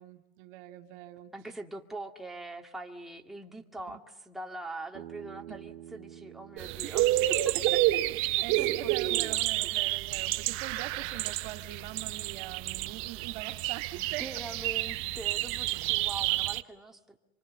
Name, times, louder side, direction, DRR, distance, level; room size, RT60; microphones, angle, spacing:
voice 1, 0.0-1.3 3.9-4.0 5.5-5.8 6.8-7.0 7.5-14.2, right 13 dB, 60° right, 6 dB, 2.4 m, -43 dB
voice 2, 1.3-7.6 8.6-9.9 14.0-17.2, right 2 dB, ahead, 1 dB, 2.1 m, -43 dB
Bass guitar, 4.9-9.2, right 12 dB, 80° right, 1.7 m, -50 dB
sound 1, 6.6-16.6, right 16 dB, 45° right, 1.2 m, -30 dB
27.5 x 24.5 x 8.4 m, 0.91 s
supercardioid pair, 140°, 31 cm